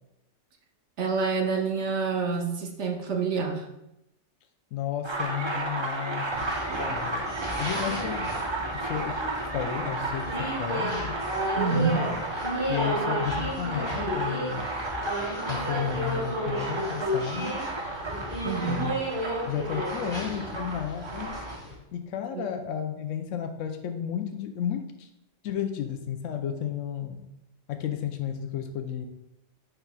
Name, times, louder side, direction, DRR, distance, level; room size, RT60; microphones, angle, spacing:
voice 1, 1.0-3.6 11.6-12.1 18.4-18.9 22.3-22.4, right 5 dB, 70° right, 3 dB, 1.1 m, -27 dB
voice 2, 4.7-6.3 6.9-7.3 7.6-9.3 9.5-11.2 11.7-12.2 12.7-14.7 15.5-17.6 18.7-19.0 19.5-21.4 21.9-25.1 25.4-27.2 27.7-29.1, left 9 dB, 85° left, 6 dB, 0.9 m, -33 dB
sound 1, 5.0-21.6, right 2 dB, 30° right, 0.6 m, -33 dB
sound 2, 6.3-21.7, equal, 45° right, 2.4 m, -33 dB
7.9 x 5.5 x 2.2 m, 0.88 s
omnidirectional pair, 1.3 m